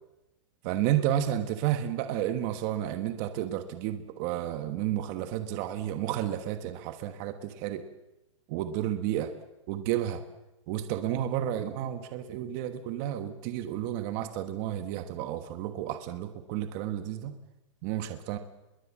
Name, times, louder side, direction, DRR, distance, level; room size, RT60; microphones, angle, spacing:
voice 1, 0.6-7.9 8.5-9.3 9.7-10.2 10.7-17.4 17.8-18.4, right 11 dB, 30° right, 9 dB, 1.3 m, -31 dB
26.0 x 22.0 x 7.4 m, 0.96 s
supercardioid pair, 175°, 17 cm